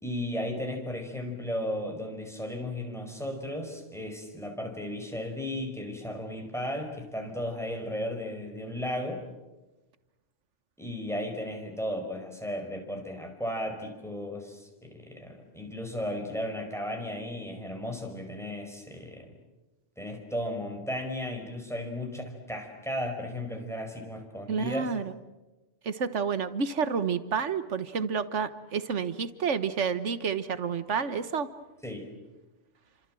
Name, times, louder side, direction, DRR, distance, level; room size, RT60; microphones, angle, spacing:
voice 1, 0.0-9.2 10.8-19.4 20.0-24.9 31.8-32.1, left 1 dB, ahead, 3 dB, 5.3 m, -35 dB
voice 2, 24.5-25.1 25.8-31.5, right 6 dB, 75° right, 13 dB, 1.6 m, -29 dB
29.5 x 26.0 x 7.8 m, 1.1 s
omnidirectional pair, 1.2 m